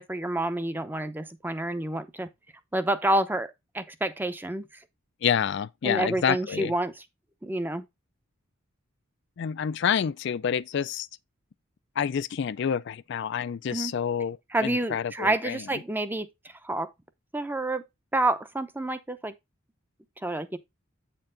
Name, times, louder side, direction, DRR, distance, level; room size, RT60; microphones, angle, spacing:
voice 1, 0.0-2.3 2.7-4.7 5.8-6.9 7.4-7.9 13.7-13.9 14.5-16.9 17.3-17.9 18.1-19.3 20.2-20.6, right 1 dB, 10° right, 0.6 m, -28 dB
voice 2, 5.2-6.7 9.4-11.1 12.0-15.6, left 8 dB, 60° left, 0.4 m, -28 dB
8.5 x 4.5 x 3.8 m
head